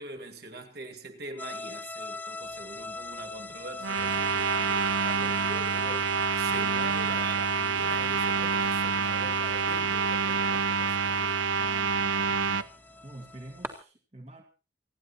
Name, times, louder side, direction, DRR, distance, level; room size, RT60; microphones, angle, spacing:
voice 1, 0.0-11.4, right 2 dB, 55° right, 2.6 m, -43 dB
sound 1, 1.4-13.8, left 3 dB, 10° left, 0.7 m, -43 dB
sound 2, 2.4-13.7, right 2 dB, 15° right, 1.7 m, -52 dB
sound 3, 3.8-12.6, right 5 dB, 85° right, 0.7 m, -27 dB
voice 2, 11.6-14.4, right 1 dB, 35° right, 1.8 m, -48 dB
29.0 x 10.5 x 4.2 m
head